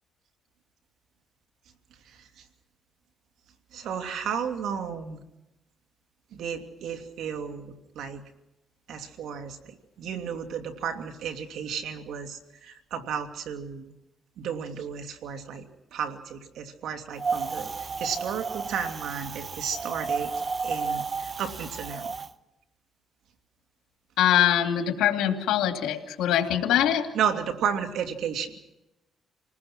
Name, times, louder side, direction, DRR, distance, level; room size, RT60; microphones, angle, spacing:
voice 1, 2.0-2.4 3.7-5.2 6.3-8.2 8.9-13.9 14.4-15.7 15.9-20.3 20.6-22.1 27.1-28.5, right 7 dB, 80° right, 5 dB, 2.6 m, -33 dB
Wind, 17.2-22.3, right 5 dB, 35° right, 0.8 m, -32 dB
voice 2, 24.2-27.1, left 11 dB, 90° left, 5 dB, 2.7 m, -23 dB
29.0 x 19.5 x 6.1 m, 0.92 s
cardioid pair, 90°, 0 cm